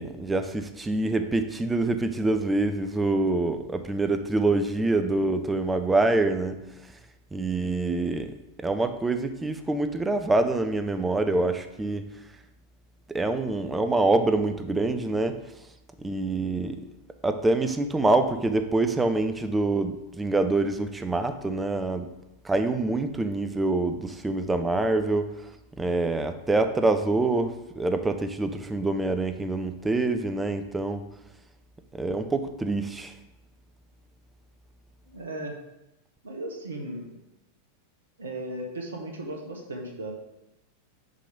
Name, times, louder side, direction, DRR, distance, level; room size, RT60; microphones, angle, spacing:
voice 1, 0.0-6.6 7.3-12.1 13.1-15.4 16.0-16.8 17.2-22.1 22.4-25.3 25.8-31.0 31.9-33.1, right 2 dB, 10° right, 8 dB, 0.6 m, -25 dB
voice 2, 35.1-35.6 36.2-37.2 38.2-40.1, right 1 dB, 65° right, 2 dB, 1.4 m, -36 dB
5.6 x 5.0 x 5.1 m, 0.92 s
figure-of-eight pair, 90°, 0 cm